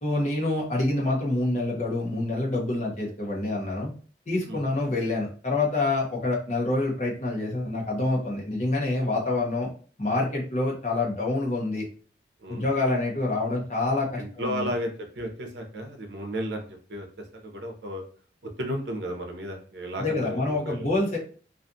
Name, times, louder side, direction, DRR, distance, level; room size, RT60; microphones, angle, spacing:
voice 1, 0.0-3.9 4.3-9.7 10.0-11.9 12.5-14.7 20.0-21.2, left 2 dB, 40° left, -2 dB, 0.8 m, -27 dB
voice 2, 14.2-18.0 18.6-21.0, equal, 65° right, 3 dB, 0.6 m, -34 dB
2.5 x 2.3 x 2.6 m, 0.41 s
head